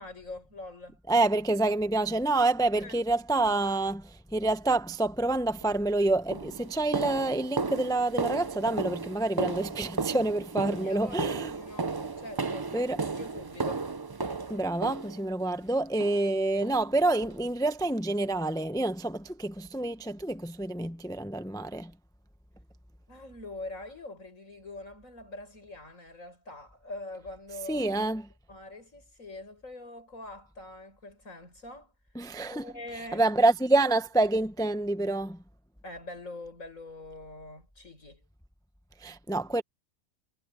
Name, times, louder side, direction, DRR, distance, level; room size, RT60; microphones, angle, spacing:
voice 1, 0.0-1.0 2.8-3.0 10.7-13.9 23.1-27.9 28.5-31.9 32.5-33.3 35.8-38.3, left 2 dB, 65° left, 8.1 m, -44 dB
voice 2, 1.1-11.5 12.7-13.0 14.5-21.9 27.7-28.2 32.2-32.7 33.1-35.4 39.0-39.6, right 2 dB, 5° left, 0.6 m, -27 dB
sound 1, 5.6-5.8 6.3-15.5 16.0-16.4 16.6-16.8 17.2-17.4 17.8-17.9 18.4-18.5, right 4 dB, 35° right, 0.3 m, -34 dB
omnidirectional pair, 1.5 m